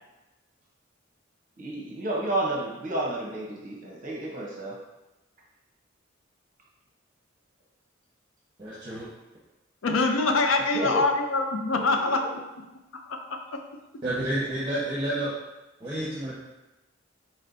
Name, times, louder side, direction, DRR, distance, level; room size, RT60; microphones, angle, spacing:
voice 1, 1.6-4.8 10.7-11.0 11.8-11.9, right 2 dB, 45° right, -3 dB, 0.8 m, -31 dB
voice 2, 8.6-9.1 14.0-15.3 15.8-16.4, right 1 dB, 25° right, -10 dB, 1.2 m, -30 dB
voice 3, 9.8-12.4 12.9-13.6, left 3 dB, 75° left, 5 dB, 0.5 m, -25 dB
4.4 x 4.2 x 2.6 m, 1.0 s
head